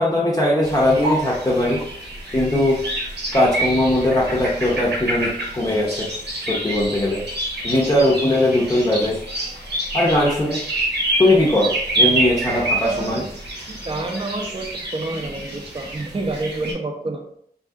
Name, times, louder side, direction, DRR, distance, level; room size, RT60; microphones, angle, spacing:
voice 1, 0.0-1.8 2.3-2.8 3.3-6.1 6.5-7.2 7.6-9.2 9.9-10.6 11.2-13.2, left 1 dB, 20° left, -5 dB, 0.6 m, -19 dB
sound 1, 0.6-16.7, right 1 dB, 80° right, 0.9 m, -27 dB
voice 2, 12.8-13.3 13.7-17.2, right 2 dB, 30° right, 4 dB, 0.5 m, -28 dB
2.7 x 2.6 x 2.4 m, 0.66 s
wide cardioid pair, 85°, 17 cm